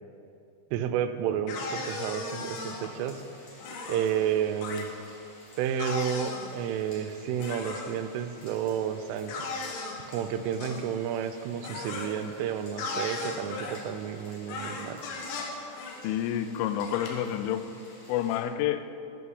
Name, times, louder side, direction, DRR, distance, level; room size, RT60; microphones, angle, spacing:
voice 1, 0.7-3.2 3.9-4.9 5.6-9.4 10.1-15.0, right 9 dB, 85° right, 9 dB, 3.2 m, -31 dB
sound 1, 1.5-2.9 3.6-4.2 4.6-4.8 5.8-6.5 7.4-7.9 9.3-10.0 10.6-10.8 11.6-12.1 12.8-13.8 14.5-15.5 15.8-16.0 16.8-17.1, left 3 dB, 70° left, 3.6 m, -36 dB
sound 2, 1.8-18.4, left 2 dB, 50° left, 4.6 m, -53 dB
voice 2, 16.0-17.7 18.1-18.9, left 10 dB, 85° left, 11 dB, 3.1 m, -29 dB
14.0 x 6.2 x 7.7 m, 2.6 s
omnidirectional pair, 5.6 m